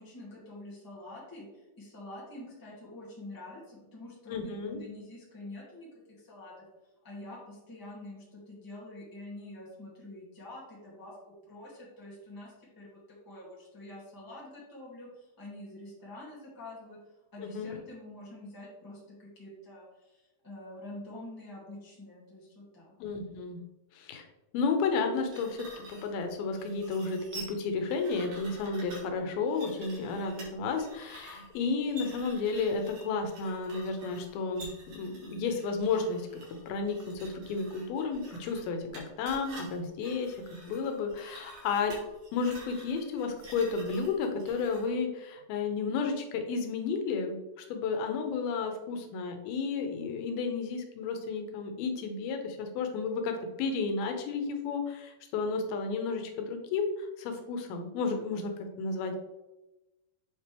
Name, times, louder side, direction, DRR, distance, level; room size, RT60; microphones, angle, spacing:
voice 1, 0.0-6.6 7.0-11.2 11.5-17.0 17.3-23.0, left 1 dB, 10° left, -6 dB, 1.4 m, -46 dB
voice 2, 4.3-4.8 17.4-17.8 23.0-23.6 23.9-24.2 24.5-36.3 36.7-41.9 42.3-59.2, left 4 dB, 90° left, 5 dB, 2.7 m, -32 dB
sound 1, 25.1-44.9, right 2 dB, 55° right, 2.8 m, -49 dB
7.9 x 4.5 x 3.4 m, 1.0 s
omnidirectional pair, 4.2 m